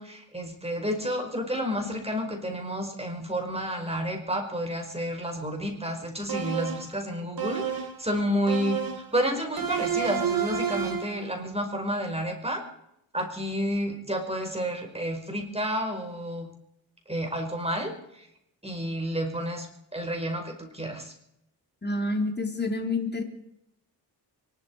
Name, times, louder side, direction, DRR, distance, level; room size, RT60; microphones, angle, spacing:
voice 1, 0.0-8.8 9.1-12.6 13.1-16.5 17.1-18.3 18.6-21.1, equal, 15° right, 3 dB, 5.2 m, -30 dB
sound 1, 6.3-6.9 7.4-8.0 8.5-9.1 9.6-11.2, right 8 dB, 50° right, 2.3 m, -30 dB
voice 2, 21.8-23.2, left 2 dB, 25° left, 3 dB, 3.8 m, -28 dB
24.5 x 12.5 x 4.8 m, 0.78 s
cardioid pair, 70°, 43 cm